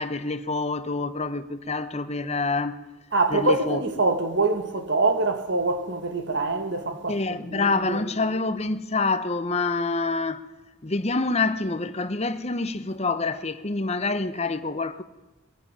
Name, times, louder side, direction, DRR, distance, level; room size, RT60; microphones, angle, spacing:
voice 1, 0.0-2.8 3.3-3.8 7.1-10.5 10.8-15.0, left 3 dB, 30° left, 1.0 m, -27 dB
voice 2, 3.1-8.0, right 3 dB, 60° right, 2.1 m, -25 dB
21.5 x 15.0 x 9.9 m
head